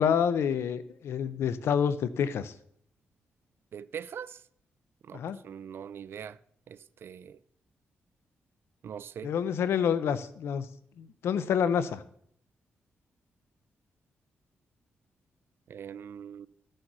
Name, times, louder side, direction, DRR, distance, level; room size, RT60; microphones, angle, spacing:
voice 1, 0.0-2.5 5.1-5.4 9.2-10.7 11.0-12.0, left 7 dB, 80° left, 0.7 m, -28 dB
voice 2, 3.7-4.4 5.0-6.4 6.7-7.4 8.8-9.3 15.7-16.5, right 8 dB, 65° right, 0.5 m, -42 dB
14.0 x 6.6 x 6.1 m
cardioid pair, 100°, 4 cm